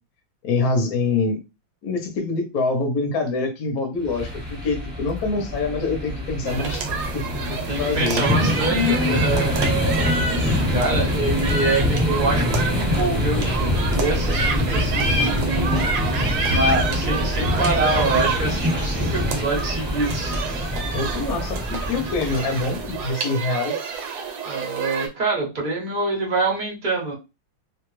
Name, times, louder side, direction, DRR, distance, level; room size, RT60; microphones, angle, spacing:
voice 1, 0.4-1.4 1.8-6.9 7.1-9.2 10.4-10.6 20.9-23.7, left 3 dB, 60° left, 1.1 m, -25 dB
sound 1, 4.0-23.1, left 1 dB, 10° right, 0.7 m, -25 dB
sound 2, 6.5-25.1, right 4 dB, 70° right, 1.4 m, -29 dB
voice 2, 7.7-9.6 10.3-20.3 24.4-27.1, right 3 dB, 40° right, 0.7 m, -25 dB
3.2 x 2.4 x 3.1 m
omnidirectional pair, 2.3 m